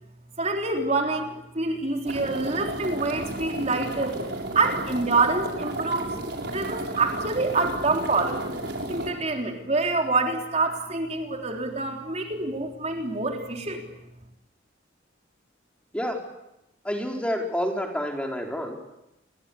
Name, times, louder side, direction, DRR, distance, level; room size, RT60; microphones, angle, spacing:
voice 1, 0.4-4.2 4.5-6.1 6.5-8.5 8.9-13.8, right 3 dB, 35° right, 3 dB, 3.8 m, -26 dB
sound 1, 2.1-9.1, right 1 dB, 65° right, 6.5 m, -33 dB
voice 2, 16.8-18.8, equal, 5° left, 2 dB, 4.7 m, -28 dB
30.0 x 23.0 x 8.5 m, 0.88 s
head